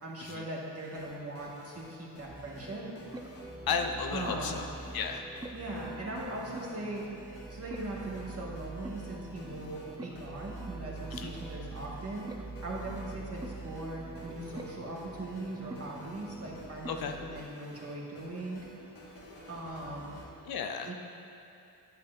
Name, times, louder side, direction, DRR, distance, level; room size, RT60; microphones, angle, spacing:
voice 1, 0.0-2.9 4.1-4.6 5.5-7.0 7.5-18.6 19.5-20.2 20.8-20.9, right 2 dB, 35° right, -4 dB, 1.8 m, -40 dB
sound 1, 0.8-20.3, left 1 dB, 75° left, 1.6 m, -51 dB
sound 2, 2.3-17.4, right 3 dB, 10° right, 0.4 m, -44 dB
voice 2, 3.7-4.7 4.9-5.3 11.2-11.3 16.9-17.1 20.5-20.9, left 6 dB, 60° left, 5 dB, 0.6 m, -33 dB
8.5 x 8.2 x 2.6 m, 2.7 s
supercardioid pair, 60°, 42 cm